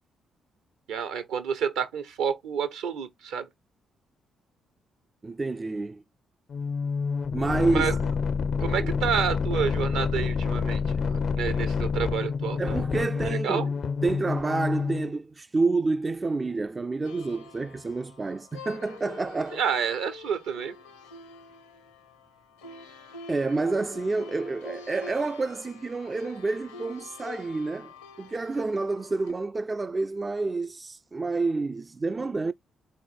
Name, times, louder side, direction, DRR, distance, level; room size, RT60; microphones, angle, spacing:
voice 1, 0.9-3.5 7.7-8.0 8.6-13.7 19.5-20.7, right 7 dB, 70° right, 0.8 m, -29 dB
voice 2, 5.2-6.0 7.3-8.0 8.8-8.9 12.6-13.7 14.0-19.6 23.3-32.5, right 3 dB, 30° right, 0.3 m, -29 dB
sound 1, 6.5-15.1, left 5 dB, 55° left, 0.4 m, -28 dB
sound 2, 17.0-29.3, left 4 dB, 80° left, 0.8 m, -46 dB
4.1 x 2.9 x 4.4 m
figure-of-eight pair, 40°, 0 cm